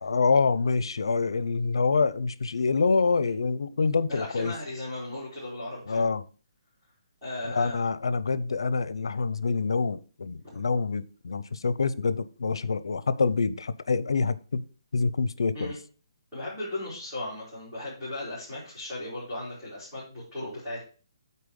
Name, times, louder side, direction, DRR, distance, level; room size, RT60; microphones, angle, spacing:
voice 1, 0.0-4.5 5.9-6.3 7.4-14.6 14.9-15.7, left 4 dB, 75° left, 0.6 m, -26 dB
voice 2, 4.1-6.1 7.2-7.8 15.5-15.8 16.3-20.8, left 1 dB, ahead, 3.8 m, -36 dB
8.5 x 4.3 x 5.2 m
hypercardioid pair, 180°, 3 cm